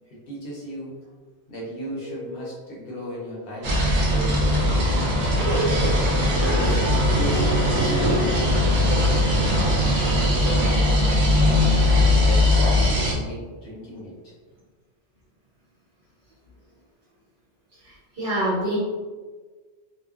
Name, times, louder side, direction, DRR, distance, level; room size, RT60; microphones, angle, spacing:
voice 1, 0.1-0.9 1.5-4.8 5.5-5.8 6.6-9.2 9.6-14.1, equal, 60° left, -5 dB, 0.9 m, -36 dB
voice 2, 2.1-2.5 17.8-18.8, right 1 dB, 55° right, -9 dB, 1.3 m, -27 dB
sound 1, 3.6-13.1, left 1 dB, 80° right, 0.9 m, -20 dB
2.9 x 2.1 x 2.3 m, 1.4 s
omnidirectional pair, 1.1 m